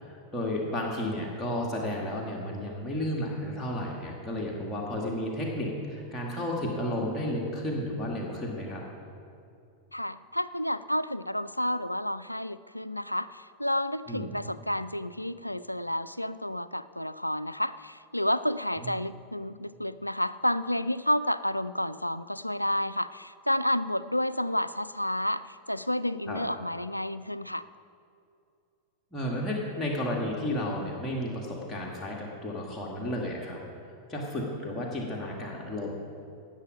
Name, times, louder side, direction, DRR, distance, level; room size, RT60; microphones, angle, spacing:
voice 1, 0.0-8.8 14.1-14.3 18.8-18.9 26.3-26.4 29.1-33.6 34.1-35.9, left 1 dB, 15° left, -3 dB, 1.9 m, -32 dB
voice 2, 9.9-27.6, left 1 dB, 90° left, 15 dB, 0.3 m, -30 dB
17.5 x 7.4 x 5.2 m, 2.5 s
figure-of-eight pair, 90°, 0 cm